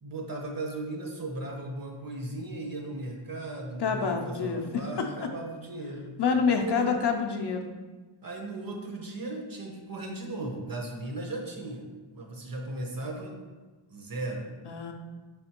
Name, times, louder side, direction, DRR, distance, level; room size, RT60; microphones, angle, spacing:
voice 1, 0.0-6.1 6.6-6.9 8.2-13.4 13.9-14.5, right 2 dB, 45° right, 1 dB, 0.8 m, -37 dB
voice 2, 3.8-5.1 6.2-7.7 14.6-14.9, left 5 dB, 55° left, 3 dB, 0.5 m, -27 dB
4.9 x 3.5 x 2.8 m, 1.3 s
wide cardioid pair, 95°, 50 cm